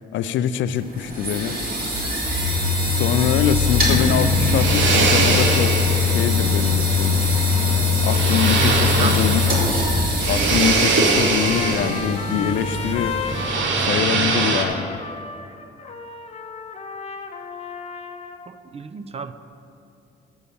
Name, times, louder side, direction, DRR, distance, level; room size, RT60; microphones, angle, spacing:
voice 1, 0.0-1.6 2.8-5.7 6.1-7.3 7.6-9.4 10.3-13.2 13.8-15.0, left 9 dB, 70° left, 13 dB, 0.4 m, -24 dB
sound 1, 0.8-13.6, left 3 dB, 45° right, 2.3 m, -22 dB
sound 2, 3.8-14.6, right 3 dB, 70° right, 1.1 m, -23 dB
voice 2, 8.6-9.4 18.5-19.3, right 5 dB, 30° right, 11 dB, 0.5 m, -30 dB
Trumpet, 11.2-18.5, left 5 dB, 30° left, 0.7 m, -33 dB
8.1 x 6.3 x 7.0 m, 2.5 s
cardioid pair, 90°, 20 cm